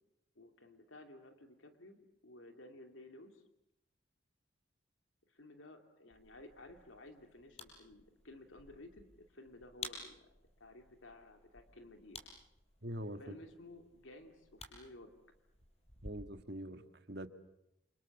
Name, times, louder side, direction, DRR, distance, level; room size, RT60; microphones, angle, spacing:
voice 1, 0.4-3.4 5.3-10.3 10.6-12.3 13.2-15.1, left 1 dB, 85° left, 6 dB, 2.8 m, -55 dB
sound 1, 6.1-16.1, left 3 dB, 30° left, 5.9 m, -54 dB
voice 2, 12.8-13.4 16.0-17.3, right 1 dB, 55° right, 8 dB, 1.8 m, -44 dB
30.0 x 27.0 x 7.3 m, 0.82 s
head